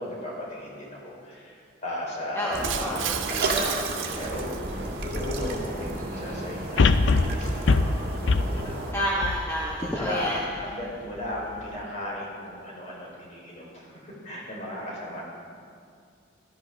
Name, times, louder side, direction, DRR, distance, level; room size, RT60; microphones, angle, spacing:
voice 1, 0.0-7.9 8.2-8.8 9.7-15.2, left 1 dB, 40° left, -4 dB, 4.0 m, -36 dB
voice 2, 2.3-3.1 6.1-6.2 8.9-10.4, equal, 15° left, -5 dB, 1.2 m, -29 dB
sound 1, 2.5-8.9, right 2 dB, 55° right, 1.7 m, -32 dB
Shatter, 2.6-5.0, right 11 dB, 85° right, 0.6 m, -34 dB
sound 2, 5.0-5.1 6.8-10.1 10.6-10.7, left 3 dB, 75° left, 0.5 m, -23 dB
16.0 x 13.0 x 3.5 m, 2.4 s
head